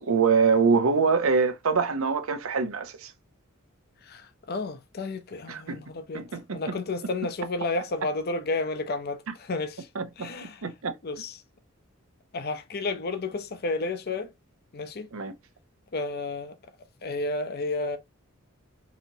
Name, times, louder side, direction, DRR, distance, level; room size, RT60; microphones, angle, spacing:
voice 1, 0.0-3.1 5.5-5.8 6.1-6.8 9.9-10.3 10.6-10.9 15.1-15.3, right 5 dB, 80° right, 0.7 m, -24 dB
voice 2, 4.0-6.2 6.5-9.9 10.2-10.6 11.0-11.4 12.3-14.3 14.7-15.1 15.9-16.6 17.0-18.0, left 3 dB, 45° left, 0.5 m, -31 dB
4.0 x 3.0 x 2.7 m
head